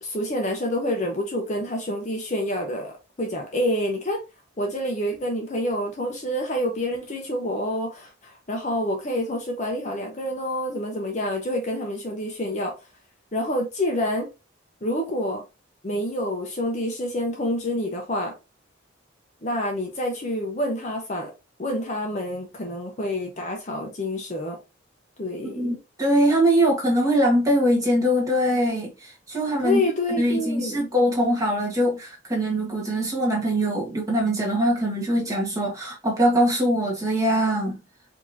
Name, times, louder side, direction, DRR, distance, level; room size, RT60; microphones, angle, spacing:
voice 1, 0.0-4.2 4.6-12.7 13.3-14.3 14.8-15.4 15.8-18.3 19.4-21.3 21.6-24.6 25.2-25.8 29.6-30.9, left 1 dB, 35° left, 0.8 m, -27 dB
voice 2, 25.4-29.8 30.1-37.8, equal, 15° right, 1.3 m, -22 dB
4.8 x 2.9 x 2.7 m
head